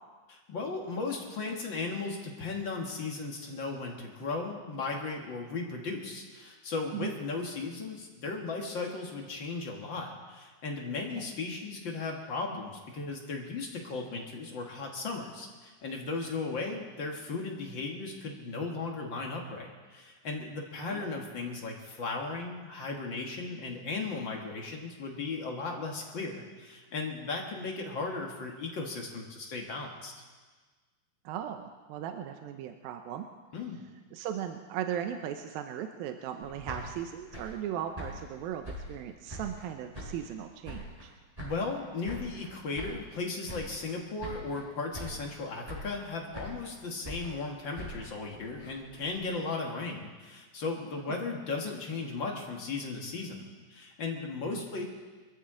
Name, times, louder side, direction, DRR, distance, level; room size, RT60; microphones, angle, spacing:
voice 1, 0.3-30.1 33.5-33.8 41.4-54.8, left 3 dB, 55° left, 1 dB, 1.3 m, -36 dB
voice 2, 31.3-33.3 34.1-41.1 51.1-51.2 54.5-54.6, right 9 dB, 80° right, 6 dB, 2.4 m, -37 dB
sound 1, 36.4-39.7 39.9-41.1 41.4-43.2 43.4-43.9 44.2-44.7 44.9-45.4 45.6-46.7 47.0-49.2, equal, 10° right, 5.7 m, -43 dB
24.5 x 14.0 x 3.8 m, 1.4 s
omnidirectional pair, 4.4 m